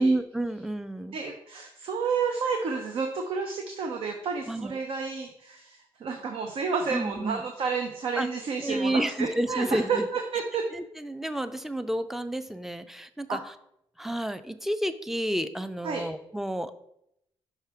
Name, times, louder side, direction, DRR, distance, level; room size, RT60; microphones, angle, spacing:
voice 1, 0.0-1.2 4.5-4.8 6.9-7.4 8.2-8.3 8.6-10.1 10.7-13.5 14.0-16.7, right 1 dB, 5° right, 11 dB, 0.4 m, -30 dB
voice 2, 1.1-10.6 13.3-13.4 15.8-16.0, right 5 dB, 70° right, 4 dB, 0.7 m, -30 dB
5.6 x 4.8 x 3.4 m, 0.77 s
cardioid pair, 85°, 10 cm